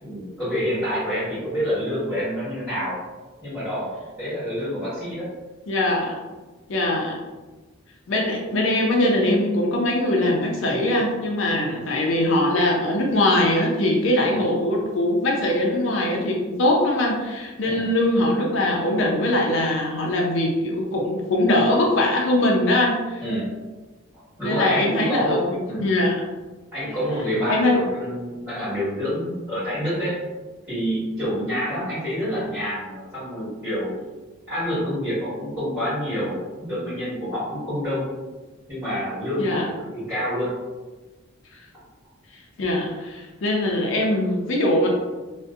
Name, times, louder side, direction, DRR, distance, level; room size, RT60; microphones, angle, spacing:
voice 1, 0.0-3.0 3.4-3.9 4.2-5.3 14.3-14.4 17.6-17.8 23.2-23.5 24.4-25.9 26.7-30.2 30.7-34.0 34.5-38.1 38.7-40.5, equal, 5° right, -18 dB, 1.2 m, -27 dB
voice 2, 5.7-6.1 6.7-7.2 8.1-23.2 24.4-26.2 27.5-27.8 39.4-39.6 42.6-44.9, left 1 dB, 60° left, -1 dB, 0.4 m, -22 dB
2.6 x 2.1 x 2.3 m, 1.2 s
head